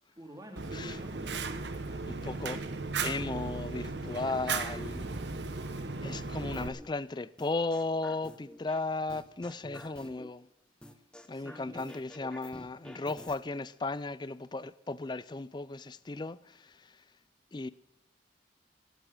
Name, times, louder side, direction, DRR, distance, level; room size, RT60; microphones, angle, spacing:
voice 1, 0.1-2.5 11.3-11.9, equal, 20° right, 2.5 m, -50 dB
Fire, 0.6-6.7, right 4 dB, 70° right, 1.1 m, -36 dB
voice 2, 2.1-2.6 3.0-5.1 6.0-10.5 11.3-17.0 17.5-17.7, left 3 dB, 25° left, 0.4 m, -36 dB
sound 1, 6.5-6.9 7.4-8.8 9.1-10.3 10.8-13.4, left 1 dB, 5° left, 1.0 m, -49 dB
16.5 x 8.3 x 7.5 m
head